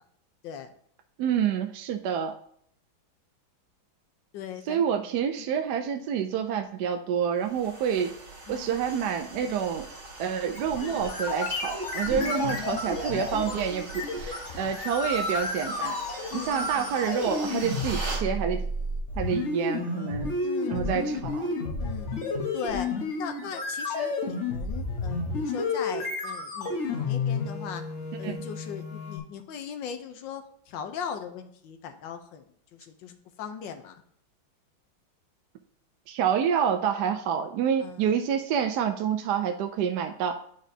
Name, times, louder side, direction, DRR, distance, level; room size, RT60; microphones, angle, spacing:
voice 1, 1.2-2.3 4.7-8.1 8.5-9.9 10.2-16.0 16.3-18.6 19.2-20.3 20.7-21.5 28.2-28.4 36.1-40.4, right 8 dB, 70° right, 6 dB, 1.0 m, -28 dB
voice 2, 4.3-4.9 5.4-5.6 6.4-6.5 8.5-8.8 12.1-12.8 16.3-17.0 20.4-21.4 21.8-22.1 22.5-22.9 23.1-27.8 28.2-32.4 32.7-34.0 37.8-38.2, left 7 dB, 80° left, 7 dB, 1.4 m, -39 dB
sound 1, 7.4-18.3, right 2 dB, 55° right, 2.3 m, -41 dB
sound 2, 10.5-29.2, left 3 dB, 45° left, 1.2 m, -31 dB
10.0 x 5.0 x 2.7 m, 0.65 s
omnidirectional pair, 2.1 m